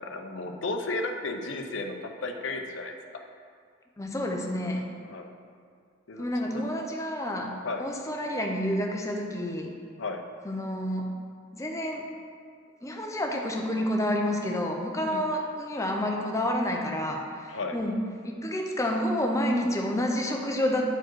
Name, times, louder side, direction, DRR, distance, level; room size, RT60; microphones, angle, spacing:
voice 1, 0.0-2.9 5.0-5.3 6.1-6.3 6.5-6.6 7.6-7.8 10.0-10.2 15.0-15.2 17.5-17.7, left 3 dB, 70° left, 4 dB, 0.7 m, -33 dB
voice 2, 4.0-4.9 6.2-7.5 7.8-9.7 10.4-11.1 11.5-12.0 12.8-20.8, left 1 dB, 15° left, 0 dB, 0.7 m, -29 dB
8.9 x 4.6 x 4.6 m, 2.1 s
head